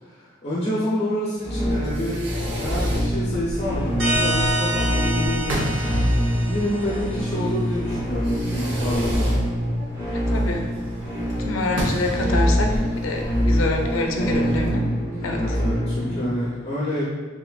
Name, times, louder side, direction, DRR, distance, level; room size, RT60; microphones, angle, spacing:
voice 1, 0.0-2.2 2.5-5.7 6.4-9.3 15.2-17.0, equal, 30° left, -6 dB, 0.6 m, -28 dB
sound 1, 1.4-16.2, equal, 15° right, 0.9 m, -25 dB
Fireworks, 1.6-14.7, equal, 60° right, 0.9 m, -33 dB
sound 2, 4.0-7.4, right 1 dB, 80° right, 1.2 m, -28 dB
voice 2, 10.3-10.7 11.4-14.8 15.2-15.4, left 2 dB, 90° left, 2 dB, 0.6 m, -26 dB
5.6 x 2.9 x 2.3 m, 1.5 s
head